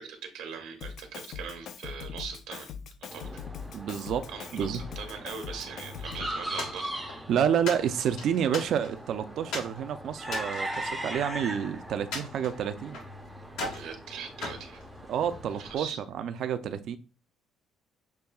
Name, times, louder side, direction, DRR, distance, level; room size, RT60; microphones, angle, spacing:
voice 1, 0.0-2.7 3.1-3.4 4.3-7.1 13.7-14.8 15.6-16.0, right 6 dB, 80° right, 1.0 m, -41 dB
Drum kit, 0.8-6.4, left 7 dB, 50° left, 0.4 m, -41 dB
sound 1, 3.1-15.9, right 1 dB, ahead, 0.6 m, -40 dB
voice 2, 3.7-4.3 4.5-4.8 7.3-13.0 15.1-17.0, right 8 dB, 50° right, 0.4 m, -29 dB
sound 2, 6.6-7.2 7.7-9.1 9.5-9.8 10.2-11.6 12.1-13.1 13.5-13.9 14.4-15.5, left 2 dB, 75° left, 1.6 m, -38 dB
6.8 x 2.7 x 2.3 m
cardioid pair, 165°, 0 cm